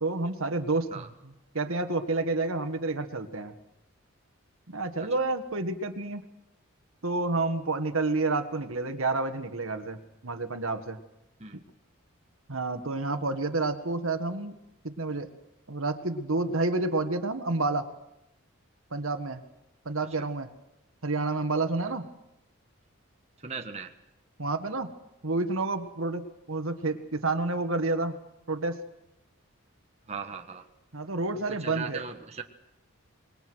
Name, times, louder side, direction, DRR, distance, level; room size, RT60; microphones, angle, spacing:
voice 1, 0.0-3.6 4.7-6.2 7.0-11.0 12.5-14.6 14.8-15.3 15.7-17.9 18.9-19.4 19.9-20.5 21.0-22.1 24.4-24.9 25.2-28.2 28.5-28.8 30.9-32.0, right 3 dB, 70° right, 8 dB, 1.7 m, -29 dB
voice 2, 23.4-23.9 30.1-30.7 31.3-32.4, right 5 dB, 30° right, 4 dB, 1.5 m, -38 dB
26.5 x 21.5 x 6.3 m, 0.91 s
head